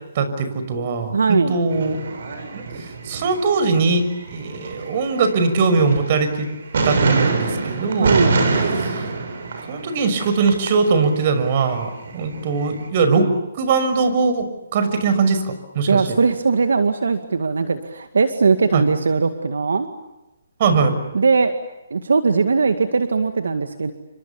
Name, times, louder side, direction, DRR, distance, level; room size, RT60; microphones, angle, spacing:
voice 1, 0.1-2.0 2.5-2.6 3.0-6.5 6.8-8.2 8.8-9.0 9.7-16.0 18.7-18.8 20.6-20.9, right 4 dB, 45° right, 9 dB, 6.0 m, -20 dB
voice 2, 1.1-1.6 7.9-8.4 15.9-19.9 21.1-21.5 21.9-23.9, right 4 dB, 80° right, 8 dB, 2.1 m, -19 dB
sound 1, 1.7-3.9 4.1-6.5 6.7-10.7 11.0-12.8, right 3 dB, 65° right, 6.9 m, -24 dB
30.0 x 26.5 x 7.2 m, 0.97 s
hypercardioid pair, 150°, 0 cm